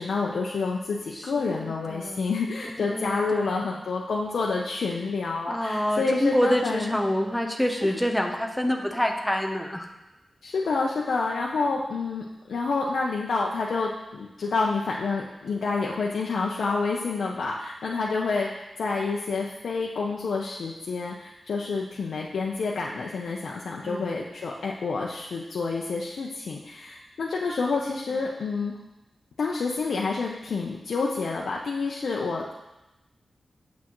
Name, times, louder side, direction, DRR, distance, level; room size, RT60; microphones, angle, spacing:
voice 1, 0.0-7.0 7.6-8.0 10.4-18.5 18.8-28.7 29.4-32.6, left 4 dB, 80° left, -2 dB, 0.6 m, -28 dB
voice 2, 1.2-2.3 2.9-3.7 5.5-9.9 23.8-24.1, equal, 5° left, 2 dB, 0.7 m, -27 dB
8.7 x 7.1 x 3.0 m, 0.98 s
wide cardioid pair, 140°, 0 cm